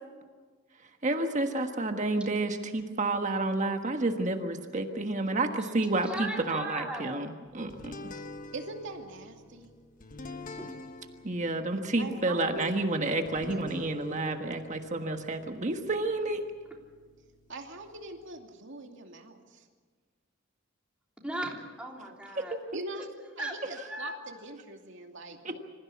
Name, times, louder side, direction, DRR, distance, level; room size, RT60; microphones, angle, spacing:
voice 1, 1.0-8.1 11.2-16.5 22.3-22.6 25.4-25.5, right 2 dB, 35° right, 5 dB, 1.4 m, -30 dB
voice 2, 6.1-7.2 10.6-10.7 21.2-22.5 23.4-24.2, right 1 dB, 5° right, -1 dB, 3.3 m, -37 dB
sound 1, 7.7-18.3, left 2 dB, 40° left, 1.3 m, -47 dB
voice 3, 8.5-9.7 12.0-12.8 17.5-19.7 22.7-23.1 23.4-25.6, right 2 dB, 60° right, 3 dB, 2.6 m, -42 dB
26.0 x 15.5 x 8.5 m, 1.5 s
head